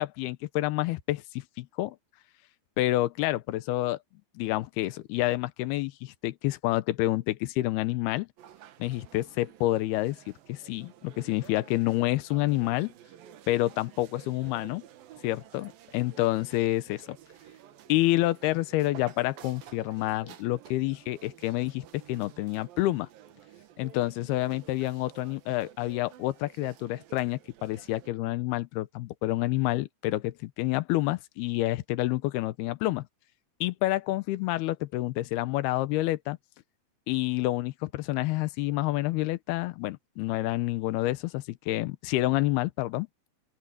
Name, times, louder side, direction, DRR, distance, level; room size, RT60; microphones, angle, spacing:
voice 1, 0.0-2.0 2.8-4.0 4.4-8.3 8.8-10.2 10.5-12.9 13.5-14.8 15.2-17.2 17.9-23.1 23.8-33.1 33.6-36.4 37.1-43.1, left 17 dB, 85° left, 2.8 m, -28 dB
sound 1, 8.4-28.1, right 11 dB, 70° right, 2.9 m, -52 dB
open air
omnidirectional pair, 4.6 m